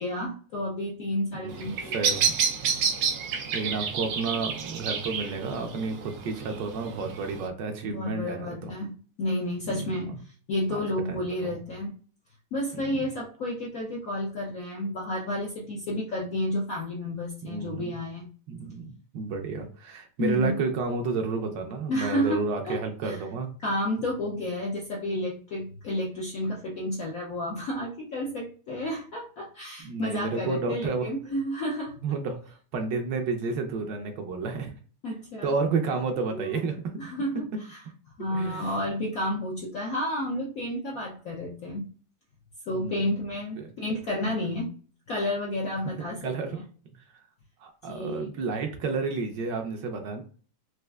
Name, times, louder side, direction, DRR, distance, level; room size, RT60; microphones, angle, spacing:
voice 1, 0.0-1.9 7.9-11.9 12.5-18.3 20.2-20.6 21.9-23.2 23.6-32.1 35.0-35.6 36.2-36.6 37.0-37.8 38.2-41.9 42.7-44.7 45.1-46.6 47.9-48.3, left 1 dB, 70° left, -3 dB, 0.8 m, -31 dB
Bird vocalization bird call bird song, 1.5-7.5, right 6 dB, 90° right, 0.8 m, -30 dB
voice 2, 1.9-2.3 3.5-8.7 9.7-10.2 10.7-10.8 11.1-11.5 12.7-13.0 17.4-17.9 18.5-23.5 29.8-31.1 32.0-34.7 35.4-36.7 37.5-37.6 38.3-38.7 42.8-43.0 43.6-43.7 46.2-46.6 47.6-50.2, right 4 dB, 70° right, 5 dB, 1.2 m, -31 dB
4.2 x 2.4 x 2.3 m, 0.42 s
omnidirectional pair, 2.2 m